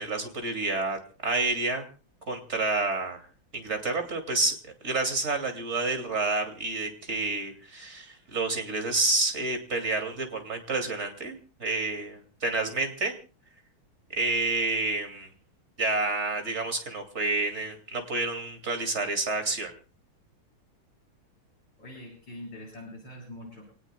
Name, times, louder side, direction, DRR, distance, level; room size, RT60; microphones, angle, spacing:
voice 1, 0.0-1.8 2.3-3.3 3.5-13.1 14.1-15.3 15.8-19.7, right 3 dB, 35° right, 4 dB, 2.7 m, -29 dB
voice 2, 21.8-23.6, left 1 dB, 60° left, -1 dB, 8.5 m, -43 dB
28.0 x 18.0 x 2.3 m, 0.34 s
omnidirectional pair, 2.2 m